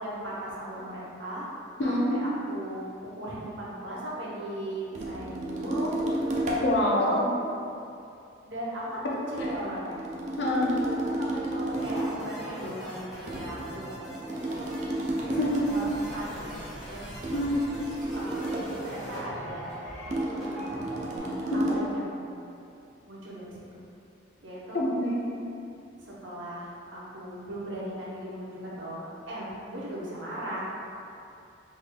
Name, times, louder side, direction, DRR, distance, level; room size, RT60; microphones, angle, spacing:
voice 1, 0.0-1.5 1.8-6.4 6.7-7.2 8.4-10.0 10.7-16.5 16.9-17.2 18.1-19.7 20.6-22.3 23.1-23.6 24.4-24.9 26.0-30.6, right 1 dB, 85° right, -6 dB, 0.8 m, -38 dB
voice 2, 1.8-2.2 6.6-7.3 10.4-10.7 15.4-15.6 17.3-17.6 24.7-25.2, left 1 dB, 70° left, -4 dB, 0.6 m, -26 dB
sound 1, 4.9-6.8 9.4-12.2 13.3-15.8 17.2-18.8 20.1-21.9, right 1 dB, 35° right, 0.4 m, -32 dB
sound 2, 11.7-21.2, right 1 dB, ahead, 1.1 m, -41 dB
3.4 x 3.4 x 2.2 m, 2.7 s
head